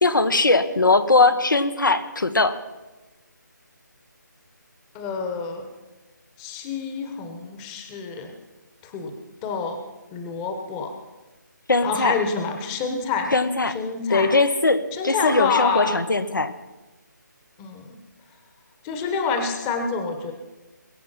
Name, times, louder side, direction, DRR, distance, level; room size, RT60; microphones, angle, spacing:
voice 1, 0.0-2.6 11.7-12.2 13.3-13.8 14.1-16.5, left 3 dB, 80° left, 10 dB, 1.3 m, -20 dB
voice 2, 4.9-5.6 6.4-8.3 8.8-9.1 9.4-9.8 10.1-10.9 11.8-13.3 13.7-14.3 14.9-16.0 17.6-18.0 18.8-20.3, left 5 dB, 15° left, 6 dB, 1.1 m, -27 dB
22.0 x 7.5 x 5.7 m, 1.1 s
figure-of-eight pair, 155°, 10 cm